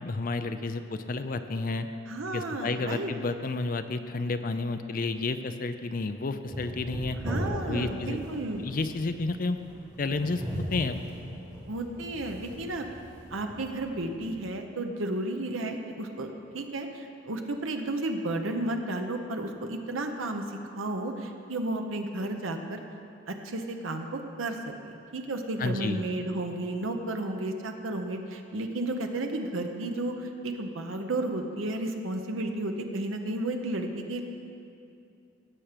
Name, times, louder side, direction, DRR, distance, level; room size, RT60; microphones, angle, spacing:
voice 1, 0.0-1.9 2.3-7.2 7.7-8.2 8.6-9.6 10.0-11.0 25.6-26.0, left 3 dB, 45° left, 9 dB, 0.5 m, -31 dB
voice 2, 2.1-3.1 7.2-8.6 11.7-12.9 13.3-20.4 20.8-22.8 23.3-24.6 24.8-34.2, right 2 dB, 85° right, 5 dB, 0.8 m, -33 dB
sound 1, 6.5-14.3, equal, 20° right, 2.0 m, -38 dB
17.5 x 6.0 x 5.1 m, 2.6 s
head